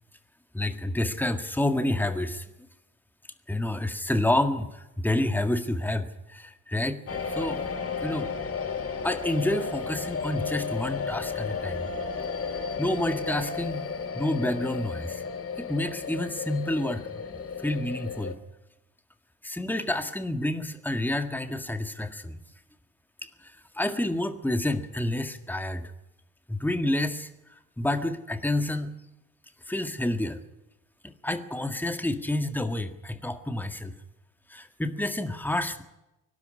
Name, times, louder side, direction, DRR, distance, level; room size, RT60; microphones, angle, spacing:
voice 1, 0.5-2.5 3.5-7.0 7.3-7.6 8.0-8.3 9.0-11.9 12.8-13.9 14.1-15.2 15.6-17.2 17.6-18.4 19.4-22.4 23.2-25.9 26.5-27.3 27.8-29.0 29.7-30.4 31.0-34.0 34.5-35.8, left 1 dB, 5° left, 8 dB, 1.8 m, -29 dB
sound 1, 7.1-18.3, left 5 dB, 35° left, 2.0 m, -33 dB
23.0 x 12.0 x 9.7 m, 0.95 s
figure-of-eight pair, 50°, 42 cm